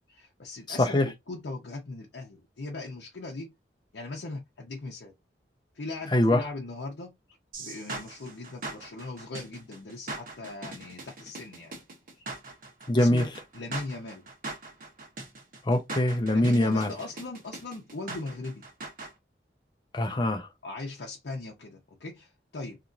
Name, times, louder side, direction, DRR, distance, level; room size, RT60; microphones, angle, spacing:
voice 1, 0.1-3.5 3.9-5.1 5.7-7.1 7.6-11.8 12.2-12.3 12.9-13.3 13.5-14.3 16.3-18.6 20.6-22.8, left 2 dB, 75° left, 0.6 m, -39 dB
voice 2, 0.7-1.1 6.1-6.4 12.9-13.3 15.6-16.9 19.9-20.5, left 1 dB, 25° left, 0.5 m, -23 dB
sound 1, 7.5-19.1, right 2 dB, 50° right, 1.0 m, -40 dB
2.9 x 2.6 x 2.5 m
head